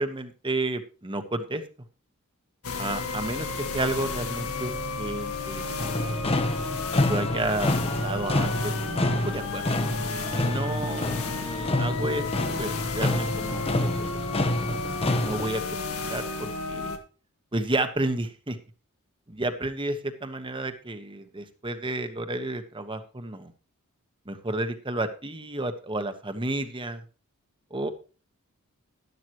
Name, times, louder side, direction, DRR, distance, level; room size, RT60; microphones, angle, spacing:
voice 1, 0.0-1.6 2.8-4.7 5.0-6.4 7.1-7.7 8.0-9.7 10.3-11.1 11.4-14.6 15.2-15.8 16.1-16.9 17.5-18.6 19.3-23.5 24.3-27.0 27.7-27.9, right 2 dB, 25° right, 9 dB, 1.2 m, -31 dB
sound 1, 2.6-17.0, left 3 dB, 80° left, 1.7 m, -32 dB
sound 2, 5.8-15.5, left 1 dB, 25° left, 0.9 m, -28 dB
12.0 x 12.0 x 3.1 m, 0.35 s
head